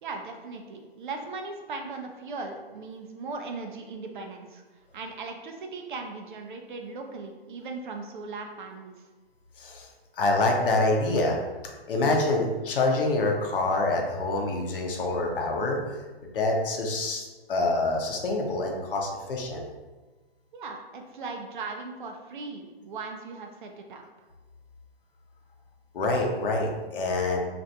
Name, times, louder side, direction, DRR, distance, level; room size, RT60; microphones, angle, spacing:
voice 1, 0.0-4.6 4.9-8.9 20.5-24.0, right 3 dB, 50° right, 3 dB, 0.5 m, -38 dB
voice 2, 9.6-9.9 10.2-11.4 11.9-16.0 16.3-19.7 25.9-27.4, left 2 dB, 60° left, 1 dB, 0.7 m, -26 dB
3.2 x 2.5 x 2.6 m, 1.2 s
hypercardioid pair, 140°, 31 cm